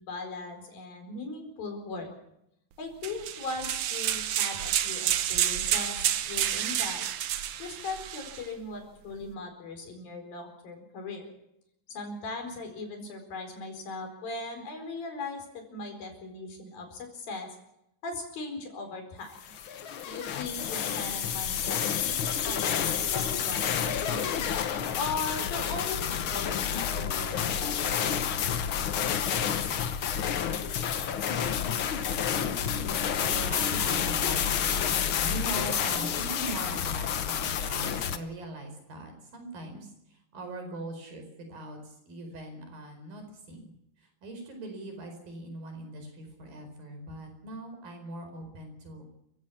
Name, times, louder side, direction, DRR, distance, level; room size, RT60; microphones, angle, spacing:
voice 1, 0.0-2.1 2.8-7.1 7.6-11.3 11.9-17.5 18.0-19.4 20.1-24.4 25.0-28.4, left 3 dB, 90° left, 4 dB, 6.3 m, -39 dB
sound 1, 3.0-8.4, right 11 dB, 65° right, 2.3 m, -29 dB
sound 2, 19.4-38.2, left 8 dB, 70° left, 1.2 m, -29 dB
voice 2, 33.0-43.7 44.0-49.0, right 2 dB, 85° right, 5 dB, 6.5 m, -41 dB
28.5 x 16.0 x 7.2 m, 0.82 s
omnidirectional pair, 4.0 m